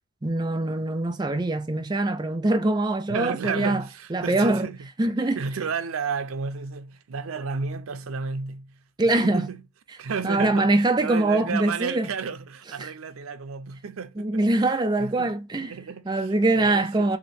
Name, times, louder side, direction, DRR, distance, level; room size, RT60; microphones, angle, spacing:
voice 1, 0.2-3.8 4.1-4.7 5.0-5.4 9.0-9.5 10.2-12.1 12.8-12.9 14.2-15.7 16.1-17.2, right 2 dB, 20° right, 0.4 m, -23 dB
voice 2, 3.1-4.9 5.2-9.6 10.0-10.7 11.0-14.7 15.0-17.2, right 5 dB, 85° right, 0.5 m, -33 dB
3.0 x 2.9 x 4.2 m
head